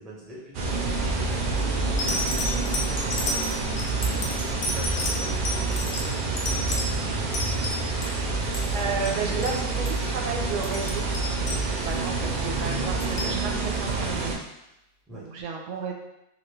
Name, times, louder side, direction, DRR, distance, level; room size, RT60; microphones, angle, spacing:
voice 1, 0.0-2.7 3.1-3.6 4.3-7.2 15.1-15.3, right 1 dB, ahead, -5 dB, 0.4 m, -43 dB
sound 1, 0.5-14.4, right 3 dB, 60° right, 0.5 m, -27 dB
sound 2, 1.1-1.4 2.0-8.1 8.4-9.2 9.4-9.6 9.9-10.1 10.5-12.1 12.7-13.4 14.2-14.3, left 2 dB, 65° left, 0.8 m, -31 dB
voice 2, 8.7-11.1 11.7-14.4 15.1-15.9, right 5 dB, 80° right, 1 dB, 0.9 m, -32 dB
2.9 x 2.5 x 3.2 m, 0.89 s
omnidirectional pair, 1.2 m